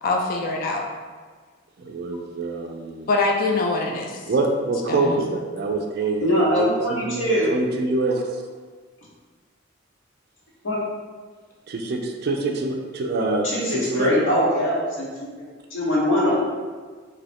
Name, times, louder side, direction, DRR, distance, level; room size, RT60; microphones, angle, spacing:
voice 1, 0.0-0.8 3.1-4.2 4.9-5.2, left 3 dB, 45° left, 0 dB, 0.4 m, -23 dB
voice 2, 1.8-3.1 4.3-8.4 11.7-14.2, right 2 dB, 55° right, 3 dB, 0.4 m, -25 dB
voice 3, 6.2-7.5 10.6-10.8 13.4-15.1 15.7-16.4, equal, 90° left, -5 dB, 1.0 m, -22 dB
2.7 x 2.5 x 3.4 m, 1.5 s
head